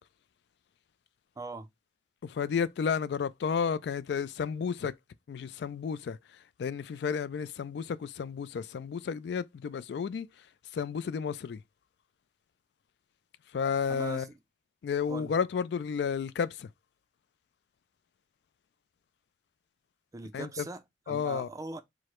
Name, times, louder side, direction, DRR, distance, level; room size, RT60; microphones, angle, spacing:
voice 1, 1.4-1.7 13.9-14.3 15.1-15.3 20.1-21.8, right 3 dB, 20° right, 0.4 m, -41 dB
voice 2, 2.2-4.9 5.3-6.2 6.6-10.3 10.7-11.6 13.5-14.3 14.8-16.7 20.3-20.6 21.1-21.5, left 6 dB, 65° left, 0.3 m, -32 dB
4.8 x 2.0 x 4.3 m
head